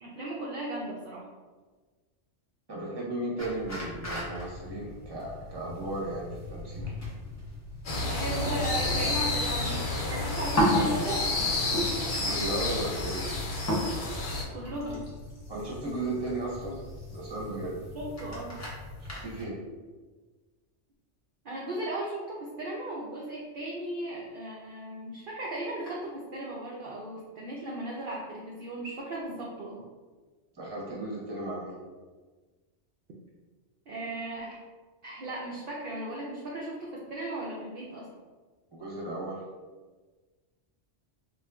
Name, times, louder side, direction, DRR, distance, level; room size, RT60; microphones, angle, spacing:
voice 1, 0.0-1.3 8.0-11.2 14.5-15.0 17.9-18.6 21.4-29.9 33.9-34.6 35.0-38.1, right 1 dB, 60° right, -4 dB, 0.6 m, -36 dB
voice 2, 2.7-6.9 12.2-13.2 15.5-16.8 17.1-17.8 19.0-19.6 30.5-31.8 38.7-39.4, right 2 dB, 25° right, -5 dB, 0.7 m, -35 dB
sound 1, 3.4-19.4, equal, 25° left, 0.4 m, -35 dB
sound 2, 7.8-14.4, left 2 dB, 70° left, 0.9 m, -30 dB
3.8 x 2.4 x 2.2 m, 1.3 s
omnidirectional pair, 1.2 m